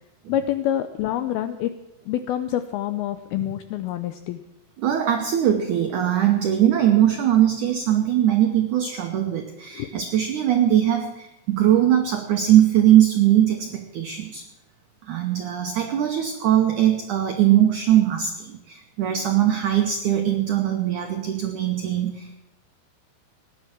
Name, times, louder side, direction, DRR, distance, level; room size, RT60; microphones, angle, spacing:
voice 1, 0.3-1.7 2.1-4.4 9.7-9.9, left 11 dB, 85° left, 10 dB, 2.2 m, -26 dB
voice 2, 4.8-14.4 15.1-22.4, right 11 dB, 80° right, 4 dB, 1.7 m, -20 dB
17.5 x 10.5 x 7.4 m, 0.96 s
omnidirectional pair, 5.1 m